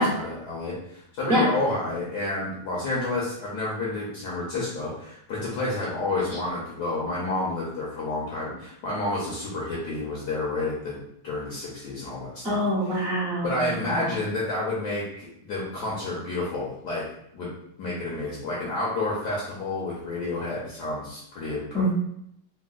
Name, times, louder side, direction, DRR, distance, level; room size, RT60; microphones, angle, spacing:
voice 1, 0.0-11.0 11.2-12.6 12.9-13.0 13.4-17.0 17.3-17.5 17.8-21.9, left 2 dB, 65° left, -5 dB, 1.1 m, -30 dB
voice 2, 12.4-14.1 21.7-21.9, equal, 45° right, -9 dB, 0.8 m, -25 dB
3.4 x 2.2 x 2.3 m, 0.75 s
omnidirectional pair, 2.2 m